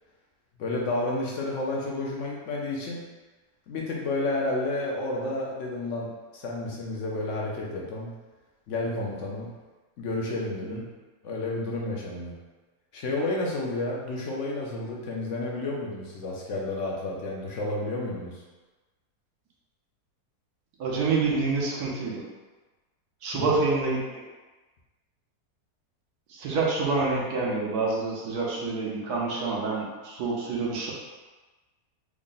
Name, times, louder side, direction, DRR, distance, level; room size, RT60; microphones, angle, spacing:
voice 1, 0.6-3.0 3.7-8.1 8.7-9.5 10.0-10.8 11.2-12.4 12.9-18.4 23.3-23.5, left 2 dB, 65° left, -3 dB, 0.8 m, -31 dB
voice 2, 20.8-22.2 23.2-24.0 26.3-30.9, right 3 dB, 75° right, -4 dB, 1.2 m, -27 dB
3.6 x 2.1 x 3.8 m, 1.2 s
omnidirectional pair, 1.7 m